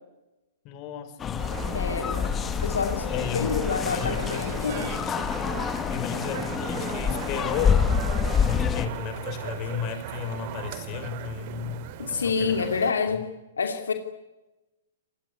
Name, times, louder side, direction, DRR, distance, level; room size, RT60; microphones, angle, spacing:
voice 1, 0.6-1.5 3.1-3.5 3.8-5.0 5.3-5.6 5.9-7.8 8.4-11.8 12.1-12.7, left 8 dB, 40° left, 9 dB, 5.0 m, -34 dB
sound 1, 1.2-8.9, left 7 dB, 20° left, 1.7 m, -27 dB
sound 2, 1.4-12.9, right 11 dB, 45° right, 2.9 m, -38 dB
voice 2, 1.7-2.2 2.6-4.9 12.0-13.3 13.6-13.9, left 5 dB, 80° left, 5 dB, 2.8 m, -28 dB
26.5 x 20.5 x 9.9 m, 1.0 s
hypercardioid pair, 115°, 0 cm